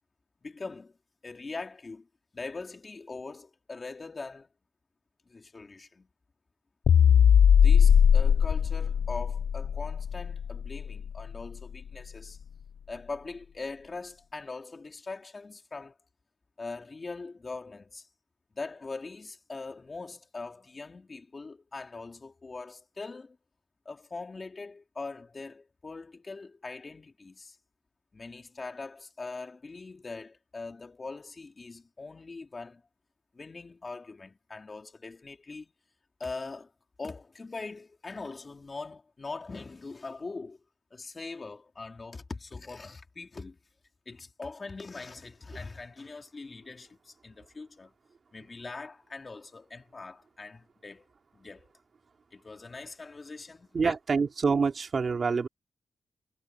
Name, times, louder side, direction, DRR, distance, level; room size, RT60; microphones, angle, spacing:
voice 1, 0.4-1.0 1.2-2.1 2.3-4.5 5.3-6.1 7.6-12.4 12.9-16.0 16.6-18.1 18.6-23.4 23.9-27.6 28.1-32.8 33.3-35.7 36.2-36.7 37.0-40.6 40.9-43.6 44.1-47.9 48.3-51.0 51.3-51.7 52.3-54.3, left 3 dB, 40° left, 3.7 m, -42 dB
sound 1, 6.9-11.4, left 8 dB, 80° left, 0.4 m, -21 dB
voice 2, 53.7-55.5, right 5 dB, 55° right, 2.7 m, -26 dB
cardioid pair, 75°, 0 cm